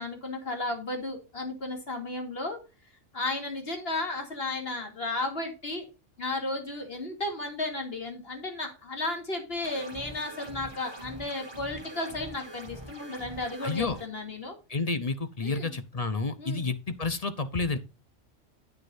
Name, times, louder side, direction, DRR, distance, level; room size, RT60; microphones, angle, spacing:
voice 1, 0.0-2.6 3.1-5.8 6.2-14.6 15.4-15.7 16.4-16.7, left 2 dB, 55° left, 2.8 m, -34 dB
sound 1, 9.6-14.0, right 2 dB, 20° right, 1.8 m, -44 dB
voice 2, 13.6-14.0 14.7-17.8, left 3 dB, 35° left, 0.8 m, -30 dB
9.7 x 9.3 x 2.6 m
omnidirectional pair, 1.2 m